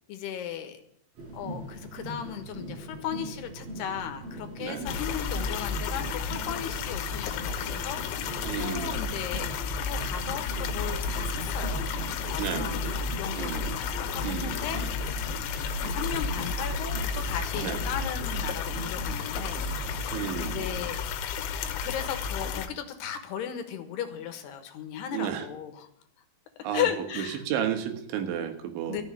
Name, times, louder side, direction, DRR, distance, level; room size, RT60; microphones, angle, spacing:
voice 1, 0.1-0.8 1.3-9.5 9.8-14.8 15.6-21.0 21.8-25.9 26.7-27.4 28.9-29.0, left 9 dB, 70° left, 7 dB, 3.1 m, -36 dB
sound 1, 1.2-20.9, right 1 dB, 55° right, 5.3 m, -41 dB
voice 2, 4.6-4.9 8.4-9.1 12.4-12.8 13.3-13.7 14.2-14.9 17.6-17.8 20.1-20.7 25.1-25.5 26.6-29.0, right 9 dB, 80° right, 7 dB, 3.7 m, -33 dB
sound 2, 4.9-22.7, left 5 dB, 90° left, 3.5 m, -32 dB
13.5 x 7.1 x 9.8 m, 0.72 s
omnidirectional pair, 5.3 m